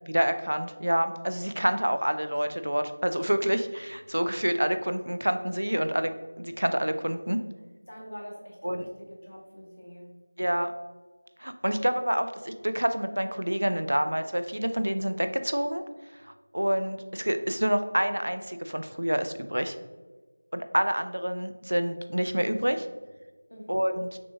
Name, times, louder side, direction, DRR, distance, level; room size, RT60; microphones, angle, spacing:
voice 1, 0.1-6.1 6.4-7.4 8.6-8.9 10.4-10.7 11.4-15.8 16.2-19.8 20.5-22.9 23.7-24.2, equal, 70° right, 9 dB, 0.4 m, -27 dB
voice 2, 7.9-10.1 23.5-23.8, equal, 65° left, -3 dB, 1.4 m, -44 dB
6.0 x 2.9 x 2.4 m, 1.3 s
figure-of-eight pair, 175°, 0 cm